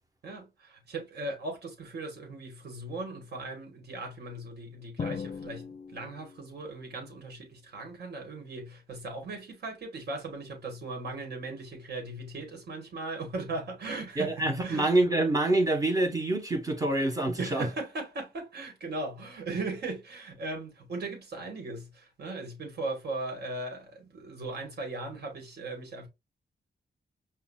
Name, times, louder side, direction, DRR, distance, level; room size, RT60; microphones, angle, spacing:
voice 1, 0.2-14.9 17.4-26.1, right 2 dB, 70° right, 1.3 m, -38 dB
Drum, 5.0-6.7, left 6 dB, 40° left, 0.4 m, -39 dB
voice 2, 14.2-17.7, right 2 dB, 20° right, 0.8 m, -26 dB
5.7 x 2.1 x 2.2 m
wide cardioid pair, 115°, 17 cm